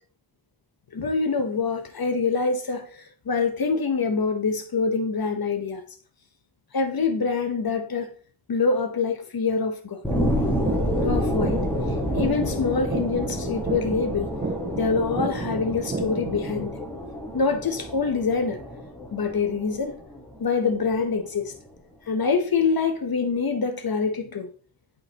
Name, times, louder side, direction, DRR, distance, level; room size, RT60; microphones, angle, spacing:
voice 1, 0.9-5.8 6.7-8.1 8.5-10.0 11.0-11.6 12.1-14.3 14.7-16.8 17.3-18.6 19.1-20.0 20.4-21.5 22.1-24.5, left 4 dB, 50° left, 0.8 m, -25 dB
sound 1, 10.0-21.0 21.5-21.6, equal, 5° left, 1.2 m, -29 dB
sound 2, 10.7-16.7, right 3 dB, 20° right, 0.5 m, -32 dB
10.5 x 3.8 x 2.8 m
wide cardioid pair, 150°, 46 cm